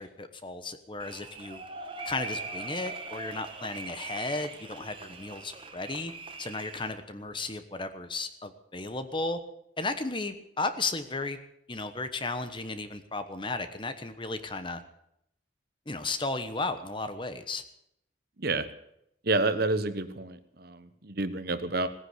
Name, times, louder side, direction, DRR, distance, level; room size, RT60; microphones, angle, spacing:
voice 1, 0.0-1.6 2.0-6.1 6.4-9.4 9.8-11.4 11.7-14.8 15.9-17.6, left 3 dB, 25° left, 10 dB, 1.1 m, -34 dB
sound 1, 1.0-6.9, right 3 dB, 25° right, 1.5 m, -41 dB
voice 2, 19.2-21.9, right 2 dB, 50° right, 12 dB, 1.1 m, -29 dB
17.5 x 10.0 x 8.3 m, 0.76 s
head